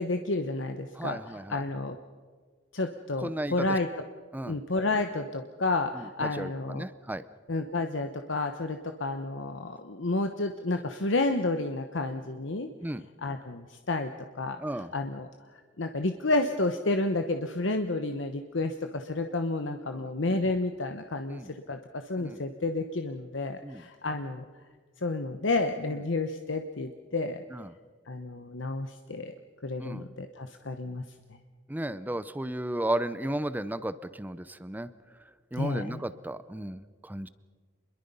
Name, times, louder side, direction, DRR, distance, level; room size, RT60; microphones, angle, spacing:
voice 1, 0.0-2.0 2.7-3.9 4.5-6.9 7.5-12.7 13.2-14.1 14.4-15.3 15.8-24.4 25.0-27.4 28.1-29.3 29.6-31.0 35.6-36.0, left 2 dB, 75° left, 7 dB, 1.0 m, -30 dB
voice 2, 1.0-1.6 3.2-3.8 4.3-4.6 5.9-7.2 12.8-13.1 14.6-14.9 19.9-20.1 21.3-21.5 22.2-22.4 23.6-23.9 27.5-27.7 29.8-30.0 31.7-34.9 35.5-37.3, right 1 dB, 10° right, 15 dB, 0.6 m, -34 dB
27.0 x 22.0 x 5.5 m, 1.5 s
head